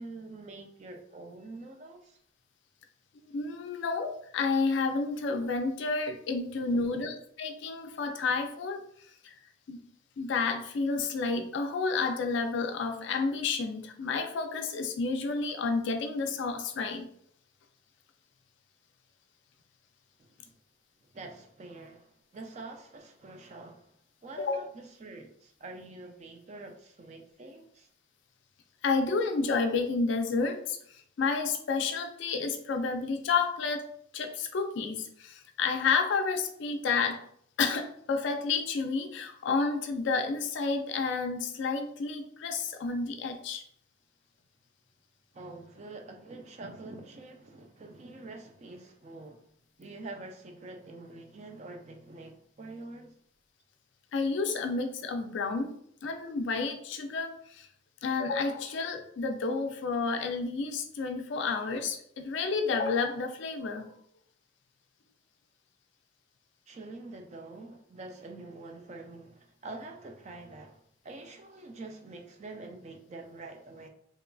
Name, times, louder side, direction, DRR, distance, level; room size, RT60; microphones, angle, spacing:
voice 1, 0.0-2.2 6.7-7.0 20.2-20.3 21.1-23.9 24.2-27.9 45.3-49.5 49.8-53.2 66.7-73.9, right 2 dB, 35° right, 0.3 m, -46 dB
voice 2, 3.2-8.8 9.2-9.4 9.7-9.8 10.2-17.1 24.4-24.6 28.8-33.9 34.1-37.2 37.6-43.6 54.1-57.7 58.0-63.9, left 4 dB, 60° left, 0.3 m, -30 dB
2.9 x 2.4 x 2.3 m
head